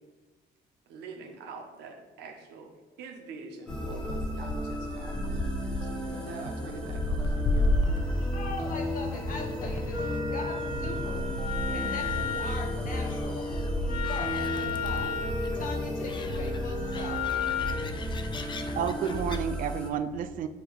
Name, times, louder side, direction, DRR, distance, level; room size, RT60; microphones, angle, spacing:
voice 1, 0.9-7.8, right 4 dB, 85° right, 3 dB, 1.0 m, -45 dB
Gull seagull, 3.7-19.4, left 2 dB, 30° left, 0.4 m, -34 dB
sound 1, 3.7-19.9, equal, 5° left, 1.0 m, -34 dB
voice 2, 8.3-11.2 11.7-13.5 13.9-15.2 15.5-17.2, left 3 dB, 55° left, 2 dB, 1.3 m, -40 dB
Wind instrument woodwind instrument, 9.9-17.9, left 5 dB, 80° left, 1.2 m, -34 dB
voice 3, 18.4-20.5, right 8 dB, 55° right, 10 dB, 0.4 m, -31 dB
6.9 x 2.9 x 5.1 m, 1.2 s
cardioid pair, 110°, 17 cm